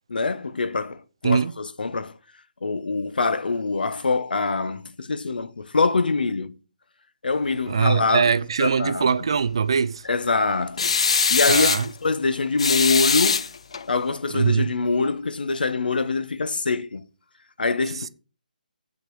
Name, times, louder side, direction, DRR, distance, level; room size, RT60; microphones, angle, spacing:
voice 1, 0.1-2.2 2.6-6.6 7.2-8.3 8.6-9.1 10.1-10.9 11.3-11.7 12.0-13.4 13.9-17.0 17.6-18.1, left 4 dB, 75° left, 1.1 m, -24 dB
voice 2, 7.7-10.1 11.5-11.9 14.3-14.7 17.9-18.1, right 6 dB, 35° right, 0.5 m, -22 dB
sound 1, 10.8-11.9 12.6-13.9, left 5 dB, 40° left, 0.5 m, -21 dB
8.3 x 6.2 x 7.1 m
hypercardioid pair, 180°, 5 cm